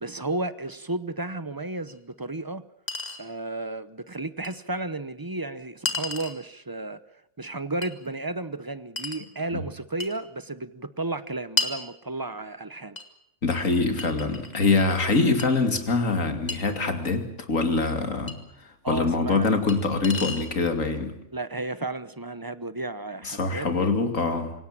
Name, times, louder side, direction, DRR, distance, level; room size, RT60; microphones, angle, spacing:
voice 1, 0.0-2.6 3.2-7.0 7.4-13.0 18.8-19.5 21.3-23.7, right 2 dB, 20° right, 0.7 m, -33 dB
Chink clink, 1.9-2.0 2.9-3.2 4.4-4.5 5.9-6.4 7.8-7.9 9.0-9.2 10.0-10.2 11.6-11.8 13.0-13.1 14.0-14.7 15.4-15.5 16.5-16.6 18.3-18.4 19.7-19.8 20.0-20.5, left 3 dB, 30° left, 2.2 m, -31 dB
voice 2, 13.4-18.4 18.6-21.2 23.2-24.5, left 3 dB, 65° left, 3.0 m, -24 dB
26.5 x 17.5 x 7.4 m
omnidirectional pair, 1.5 m